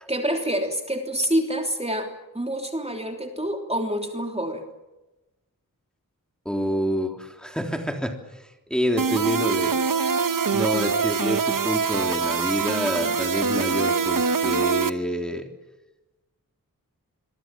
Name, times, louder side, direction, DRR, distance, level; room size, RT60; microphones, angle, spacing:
voice 1, 0.1-4.6, equal, 20° right, 3 dB, 3.2 m, -27 dB
voice 2, 6.5-8.2 8.7-9.8 10.5-15.5, equal, ahead, 3 dB, 3.5 m, -27 dB
sound 1, 9.0-14.9, right 5 dB, 70° right, 1.0 m, -24 dB
27.0 x 22.5 x 7.6 m, 1.0 s
wide cardioid pair, 65°, 34 cm